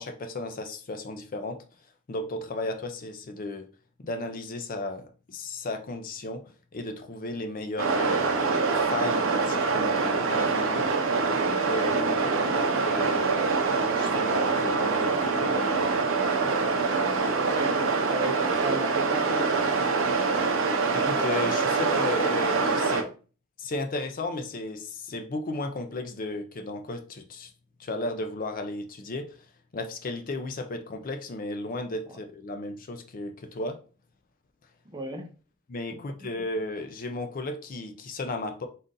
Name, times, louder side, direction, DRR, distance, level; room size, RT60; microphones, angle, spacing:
voice 1, 0.0-1.6 2.1-3.7 4.0-6.4 6.7-8.3 8.7-10.9 11.6-13.5 13.9-15.9 20.9-23.1 23.6-27.5 27.8-29.5 29.7-33.8 35.7-38.7, left 2 dB, 40° left, 6 dB, 0.5 m, -34 dB
sound 1, 7.8-23.0, right 4 dB, 65° right, 0.6 m, -25 dB
voice 2, 17.4-19.7 34.9-35.3, right 1 dB, 20° right, 5 dB, 0.5 m, -35 dB
3.9 x 2.6 x 3.7 m, 0.37 s
head